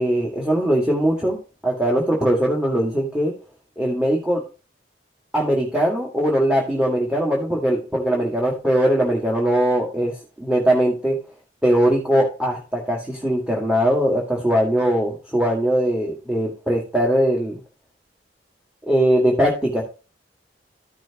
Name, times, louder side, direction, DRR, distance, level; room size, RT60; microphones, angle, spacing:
voice 1, 0.0-1.4 1.6-3.3 3.8-4.4 5.3-11.2 11.6-17.6 18.9-19.8, right 1 dB, 5° right, -2 dB, 2.0 m, -20 dB
14.0 x 6.1 x 3.0 m, 0.33 s
head